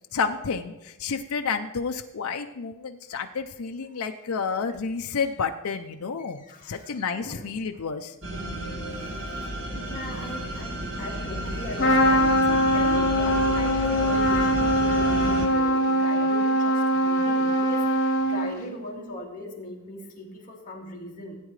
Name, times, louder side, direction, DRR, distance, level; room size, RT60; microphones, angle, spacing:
voice 1, 0.1-8.1, left 5 dB, 75° left, 5 dB, 0.5 m, -30 dB
voice 2, 6.2-7.4 9.2-17.8 18.2-21.4, left 1 dB, 35° left, -3 dB, 2.3 m, -39 dB
sound 1, 8.2-15.5, right 1 dB, 60° right, 2.0 m, -32 dB
Trumpet, 11.8-18.7, equal, 55° left, 3.0 m, -22 dB
16.5 x 9.0 x 3.2 m, 1.0 s
head